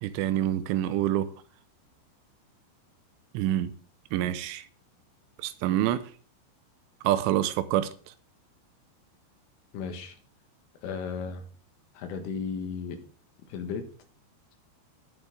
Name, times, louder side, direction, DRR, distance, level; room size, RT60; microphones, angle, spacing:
voice 1, 0.0-1.3 3.3-3.7 4.1-4.6 5.4-6.0 7.0-7.9, right 12 dB, 85° right, 3.2 m, -26 dB
voice 2, 9.7-10.2 10.8-11.5 12.0-13.0 13.5-13.9, left 5 dB, 85° left, 4.3 m, -34 dB
18.0 x 6.2 x 3.8 m
omnidirectional pair, 5.7 m